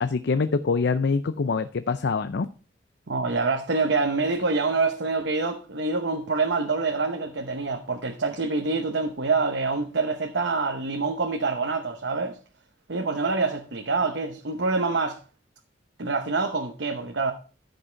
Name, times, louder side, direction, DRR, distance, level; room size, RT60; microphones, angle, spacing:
voice 1, 0.0-2.5, left 4 dB, 65° left, 0.5 m, -25 dB
voice 2, 3.1-12.4 12.9-15.2 16.0-17.3, right 3 dB, 70° right, 0.9 m, -26 dB
13.5 x 5.3 x 4.5 m
head